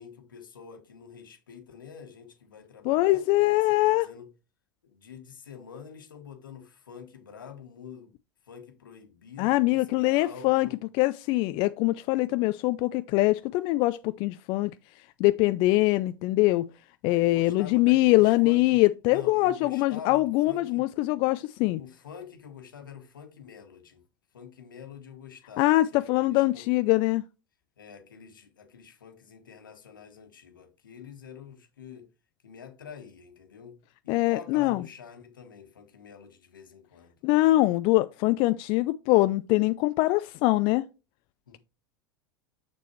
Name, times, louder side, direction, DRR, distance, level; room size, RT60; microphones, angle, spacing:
voice 1, 0.0-4.3 4.8-8.1 8.4-10.8 17.1-18.8 19.1-20.9 21.7-24.0 24.3-26.7 27.8-32.1 32.4-33.7 34.0-37.2 41.5-41.6, left 7 dB, 80° left, 1.4 m, -47 dB
voice 2, 2.8-4.1 9.4-10.7 10.9-14.7 15.2-16.7 17.0-21.8 25.6-27.2 34.1-34.8 37.2-40.8, left 19 dB, 50° left, 0.4 m, -23 dB
7.0 x 6.7 x 3.1 m
hypercardioid pair, 80°, 11 cm